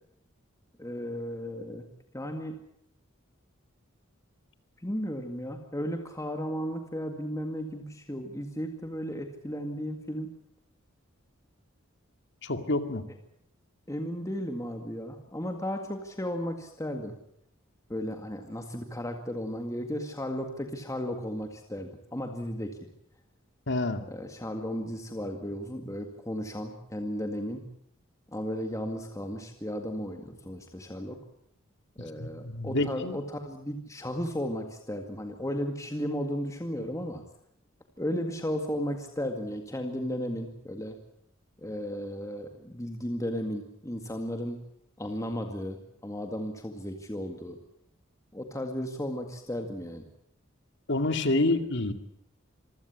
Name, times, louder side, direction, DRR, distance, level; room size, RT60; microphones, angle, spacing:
voice 1, 0.8-1.9 2.1-2.6 4.8-10.3 13.9-17.1 17.9-22.8 24.1-27.6 28.3-31.2 32.0-37.2 38.0-41.0 41.6-44.6 45.0-47.6 48.3-50.0, equal, 15° left, 5 dB, 2.0 m, -34 dB
voice 2, 12.4-13.0 23.7-24.0 32.2-33.2 50.9-51.9, left 2 dB, 60° left, 8 dB, 2.4 m, -28 dB
26.0 x 16.5 x 8.6 m, 0.71 s
head